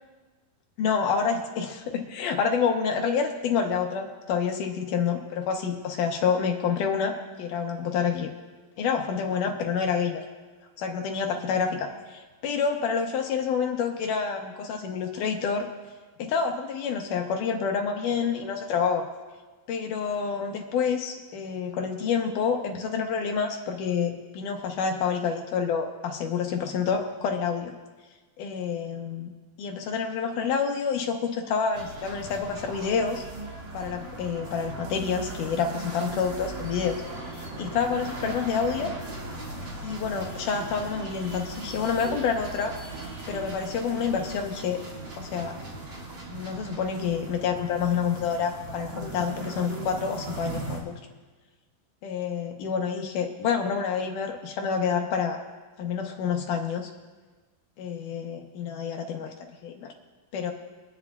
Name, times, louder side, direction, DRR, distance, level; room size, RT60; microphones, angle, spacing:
voice 1, 0.8-8.3 8.8-10.2 10.8-15.7 16.2-19.1 19.7-27.7 28.4-29.3 29.6-33.2 33.7-37.0 37.4-38.9 39.8-42.7 43.3-44.8 45.2-45.6 46.3-51.0 52.0-55.4 55.8-56.9 57.8-59.3 59.6-59.9 60.3-60.5, left 6 dB, 70° left, 3 dB, 2.1 m, -28 dB
sound 1, 31.7-50.8, right 2 dB, 40° right, 1.8 m, -38 dB
23.5 x 10.0 x 2.3 m, 1.3 s
omnidirectional pair, 4.4 m